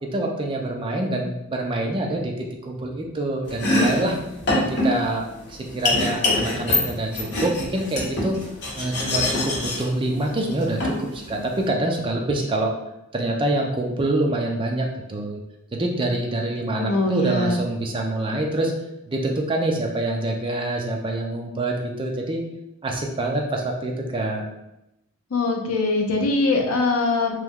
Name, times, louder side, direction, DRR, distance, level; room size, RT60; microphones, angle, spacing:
voice 1, 0.0-4.2 4.5-8.3 8.7-12.7 13.1-15.4 15.7-18.7 19.1-22.4 22.8-24.4, right 1 dB, 25° right, 1 dB, 0.4 m, -26 dB
Domestic sounds home sounds, 3.4-11.7, left 2 dB, 50° left, 0.9 m, -25 dB
voice 2, 16.7-17.6 25.3-27.4, left 2 dB, 75° left, 2 dB, 0.6 m, -22 dB
3.0 x 2.2 x 3.6 m, 0.88 s
head